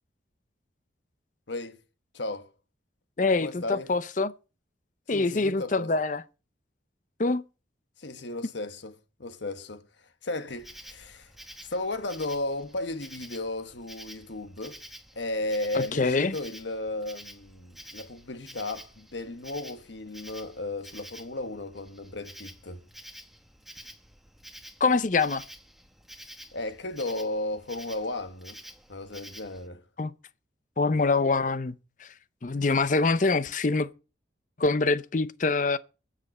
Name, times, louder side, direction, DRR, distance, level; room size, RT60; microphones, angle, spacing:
voice 1, 1.5-1.8 2.1-2.5 3.4-3.9 5.1-5.9 8.0-9.8 10.2-11.3 11.6-14.8 15.1-22.8 26.5-28.6 28.9-29.8, left 2 dB, 70° left, 1.3 m, -34 dB
voice 2, 3.2-4.3 5.1-6.2 7.2-7.4 15.7-16.4 24.8-25.4 30.0-30.1 30.8-32.1 32.4-33.9 34.6-35.8, left 3 dB, 40° left, 0.6 m, -25 dB
Insect, 10.5-29.7, equal, ahead, 1.1 m, -49 dB
22.5 x 7.6 x 4.3 m
head